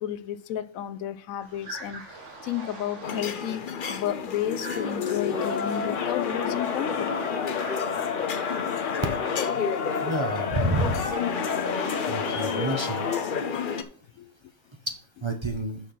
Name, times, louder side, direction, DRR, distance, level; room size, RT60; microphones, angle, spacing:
voice 1, 0.0-3.6 3.9-7.2 14.1-14.3, left 11 dB, 80° left, 1.0 m, -32 dB
Jungle Meets Ocean - Pulau Seram Indonesia, 1.4-9.7 9.9-10.4, right 2 dB, 60° right, 2.0 m, -46 dB
sound 1, 3.0-13.8, left 6 dB, 45° left, 0.8 m, -31 dB
Crowd, 5.3-13.4, left 6 dB, 65° left, 1.4 m, -31 dB
voice 2, 10.0-11.0 12.1-13.0 15.2-15.8, right 2 dB, 25° right, 0.9 m, -28 dB
6.6 x 6.2 x 5.9 m
omnidirectional pair, 1.4 m